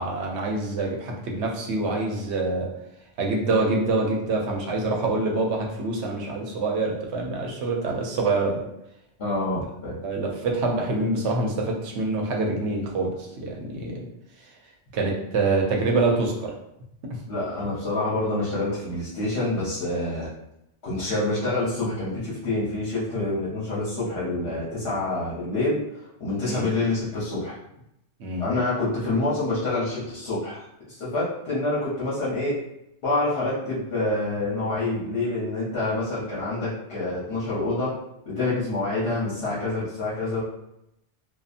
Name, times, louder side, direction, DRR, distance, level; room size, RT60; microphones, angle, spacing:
voice 1, 0.0-2.7 3.2-8.6 10.0-14.0 14.9-16.5 26.4-26.7 28.2-28.5, right 3 dB, 75° right, 0 dB, 0.9 m, -25 dB
voice 2, 9.2-9.9 17.3-20.3 20.8-27.6 28.4-32.6 33.0-37.9 38.3-40.4, left 2 dB, 65° left, -8 dB, 1.0 m, -27 dB
2.7 x 2.3 x 2.4 m, 0.83 s
omnidirectional pair, 1.2 m